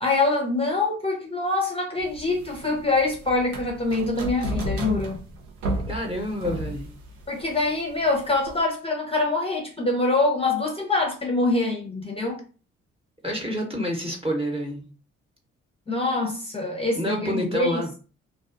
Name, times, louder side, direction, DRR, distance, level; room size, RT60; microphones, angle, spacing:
voice 1, 0.0-5.2 7.3-12.4 15.9-17.8, left 3 dB, 15° left, 0.8 m, -25 dB
sound 1, 2.0-8.6, right 1 dB, 70° right, 0.8 m, -33 dB
voice 2, 5.9-6.9 13.2-14.9 17.0-17.9, equal, 15° right, 1.1 m, -28 dB
2.5 x 2.2 x 2.5 m
hypercardioid pair, 40°, 36 cm